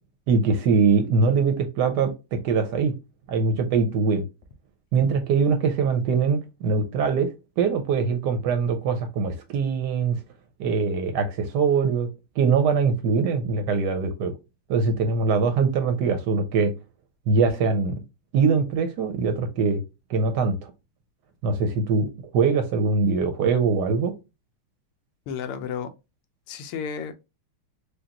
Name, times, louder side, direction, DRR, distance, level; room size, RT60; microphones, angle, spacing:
voice 1, 0.3-2.9 3.3-4.2 4.9-7.3 7.6-10.2 10.6-12.1 12.4-14.3 14.7-16.7 17.3-17.9 18.3-19.8 20.1-20.7 21.4-24.1, right 5 dB, 70° right, 1.0 m, -22 dB
voice 2, 25.3-25.9 26.5-27.1, left 7 dB, 85° left, 1.5 m, -32 dB
4.9 x 2.3 x 2.8 m
omnidirectional pair, 2.4 m